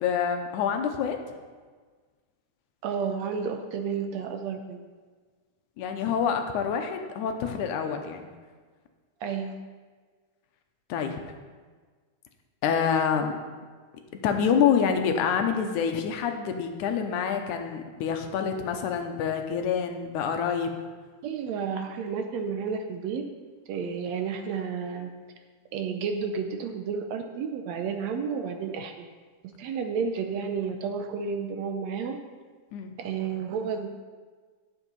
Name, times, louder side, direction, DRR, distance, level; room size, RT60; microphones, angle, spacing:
voice 1, 0.0-1.2 5.8-8.3 10.9-11.2 12.6-13.4 14.2-20.7 32.7-32.9, left 7 dB, 85° left, 5 dB, 2.3 m, -27 dB
voice 2, 2.8-4.8 9.2-9.6 21.2-23.2 23.7-25.1 25.7-29.1 29.6-32.2 33.0-34.0, right 6 dB, 75° right, 5 dB, 1.8 m, -31 dB
11.0 x 7.2 x 5.3 m, 1.5 s
omnidirectional pair, 3.5 m